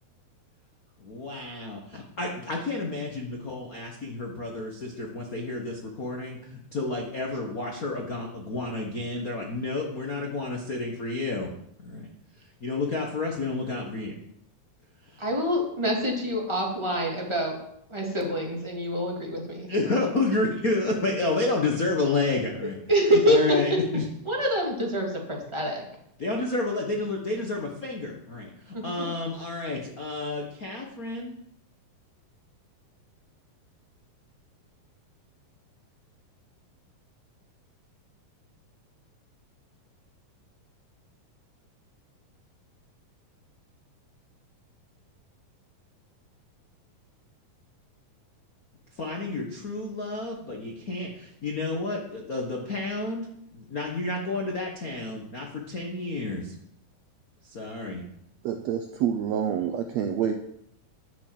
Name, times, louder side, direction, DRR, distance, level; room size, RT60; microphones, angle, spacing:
voice 1, 1.0-11.5 11.8-12.1 12.6-14.2 15.1-15.2 19.7-22.8 23.3-24.0 26.2-31.3 49.0-53.3 53.5-56.5 57.4-58.0, left 3 dB, 55° left, 0 dB, 0.9 m, -30 dB
voice 2, 15.2-17.6 17.9-19.7 22.9-23.8 24.2-25.8 28.7-29.1, equal, 10° right, -2 dB, 2.5 m, -26 dB
voice 3, 58.4-60.3, right 8 dB, 90° right, 6 dB, 1.5 m, -27 dB
11.5 x 7.2 x 7.7 m, 0.73 s
omnidirectional pair, 4.1 m